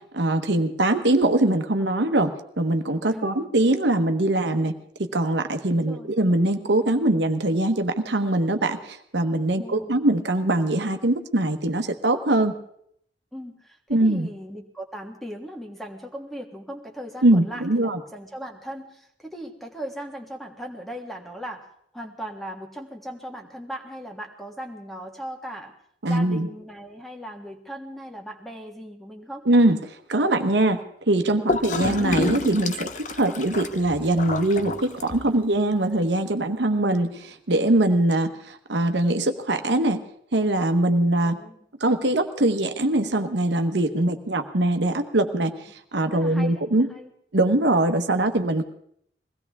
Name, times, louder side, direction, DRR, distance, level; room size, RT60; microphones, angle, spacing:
voice 1, 0.1-4.7 5.0-12.5 13.9-14.3 17.2-18.0 26.0-26.5 29.5-40.0 40.3-41.4 41.8-45.5 45.9-46.9 47.3-48.7, right 1 dB, 85° right, 8 dB, 1.2 m, -22 dB
voice 2, 3.1-3.5 5.7-6.5 9.5-10.0 13.3-21.7 21.9-25.7 26.0-29.4 41.2-41.6 46.1-47.1, equal, ahead, 3 dB, 1.6 m, -38 dB
Gurgling / Toilet flush, 31.5-35.5, left 3 dB, 45° left, 0.8 m, -29 dB
22.0 x 16.5 x 3.6 m, 0.69 s
head